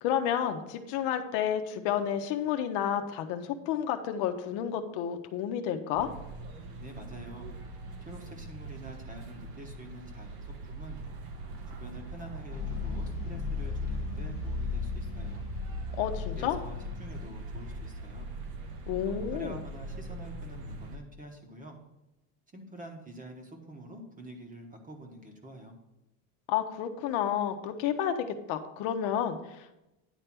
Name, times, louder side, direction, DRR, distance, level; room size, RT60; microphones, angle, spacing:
voice 1, 0.0-6.1 16.0-16.6 18.9-19.6 26.5-29.7, left 9 dB, 65° left, 7 dB, 0.8 m, -31 dB
sound 1, 5.9-21.0, right 3 dB, 80° right, 1.4 m, -42 dB
voice 2, 6.8-7.5 8.0-11.0 11.7-15.4 16.4-18.3 19.0-21.8 22.5-25.8, right 1 dB, 15° right, 4 dB, 1.0 m, -47 dB
sound 2, 12.5-19.8, left 4 dB, 30° left, 0.8 m, -37 dB
9.9 x 3.3 x 5.9 m, 0.93 s
supercardioid pair, 135°, 47 cm